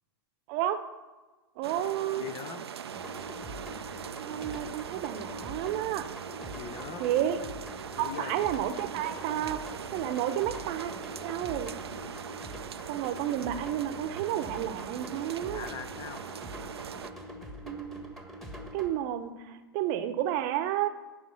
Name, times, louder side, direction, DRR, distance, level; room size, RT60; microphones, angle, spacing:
voice 1, 0.5-0.8 1.6-2.3 4.2-6.1 7.0-7.4 7.8-9.6 9.9-10.9 11.2-11.7 12.9-15.7 17.6-18.1 18.7-20.9, right 11 dB, 45° right, 9 dB, 0.8 m, -31 dB
sound 1, 1.6-17.1, right 8 dB, 80° right, 0.4 m, -41 dB
voice 2, 2.2-2.6 6.5-7.1 8.0-8.4 15.5-16.2, left 9 dB, 35° left, 13 dB, 0.6 m, -41 dB
sound 2, 2.9-18.9, equal, ahead, 1.3 m, -44 dB
8.1 x 5.1 x 6.6 m, 1.2 s
hypercardioid pair, 100°, 13 cm